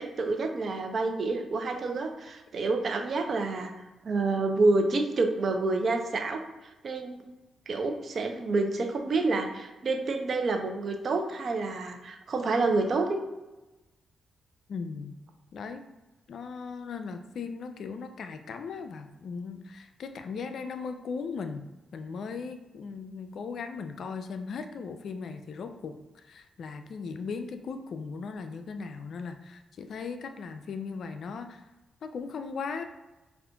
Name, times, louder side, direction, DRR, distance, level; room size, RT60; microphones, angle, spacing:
voice 1, 0.0-3.7 4.0-6.4 6.8-7.3 7.7-13.2, right 3 dB, 55° right, 4 dB, 0.5 m, -28 dB
voice 2, 14.7-15.2 15.5-15.8 16.3-31.7 32.0-32.8, left 5 dB, 70° left, 8 dB, 0.3 m, -38 dB
4.9 x 2.5 x 2.2 m, 1.1 s
supercardioid pair, 50°, 0 cm